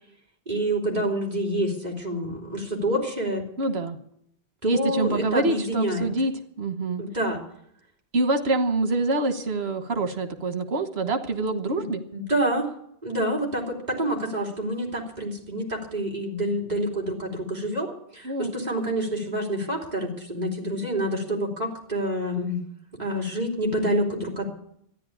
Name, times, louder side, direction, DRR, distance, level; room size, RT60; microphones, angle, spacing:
voice 1, 0.5-3.4 4.6-6.1 7.0-7.4 11.8-11.9 12.1-12.7 13.0-22.6 23.0-24.5, right 1 dB, 40° right, -1 dB, 3.3 m, -27 dB
voice 2, 3.6-4.0 4.6-6.3 6.6-7.0 8.1-12.0 18.2-18.5, right 2 dB, 90° right, 8 dB, 1.5 m, -25 dB
13.0 x 10.5 x 8.5 m, 0.70 s
omnidirectional pair, 1.0 m